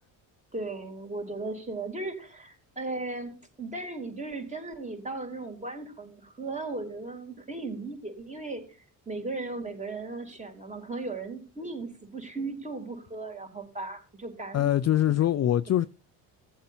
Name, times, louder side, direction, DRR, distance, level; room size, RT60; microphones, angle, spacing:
voice 1, 0.5-14.7 15.3-15.5, right 3 dB, 15° right, 3.5 m, -37 dB
voice 2, 14.5-15.9, left 12 dB, 40° left, 0.5 m, -23 dB
17.0 x 7.8 x 2.8 m
cardioid pair, 100°, 42 cm